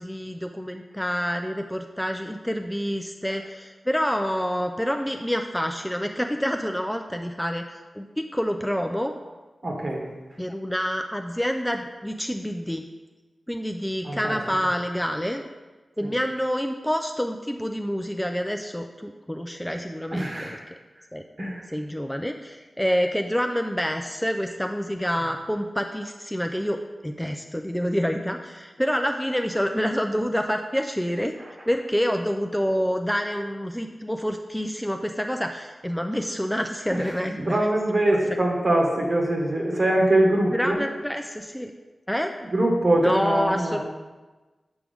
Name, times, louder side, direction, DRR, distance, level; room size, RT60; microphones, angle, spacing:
voice 1, 0.0-9.1 10.4-12.9 13.5-15.4 16.0-20.6 21.1-21.2 21.7-31.3 31.7-37.6 40.5-41.7 42.1-42.3 43.0-43.8, equal, 5° left, 4 dB, 0.4 m, -27 dB
voice 2, 9.6-10.1 14.0-14.4 20.1-20.6 21.4-21.6 36.9-37.0 37.3-40.8 42.5-43.8, right 1 dB, 50° right, -1 dB, 1.5 m, -23 dB
7.2 x 4.8 x 3.5 m, 1.2 s
wide cardioid pair, 65°, 0 cm